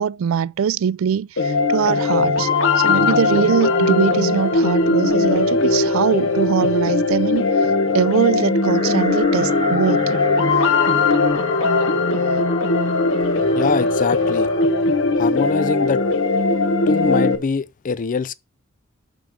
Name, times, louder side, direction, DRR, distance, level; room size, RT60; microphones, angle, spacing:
voice 1, 0.0-2.5 2.8-7.5 7.9-10.1, right 7 dB, 70° right, 0.3 m, -22 dB
sound 1, 1.4-17.4, left 3 dB, 65° left, 1.0 m, -19 dB
sound 2, 8.7-14.7, equal, 25° left, 1.9 m, -32 dB
voice 2, 13.5-14.5 15.1-16.0 16.9-18.3, left 4 dB, 40° left, 0.4 m, -23 dB
6.6 x 6.1 x 5.0 m
head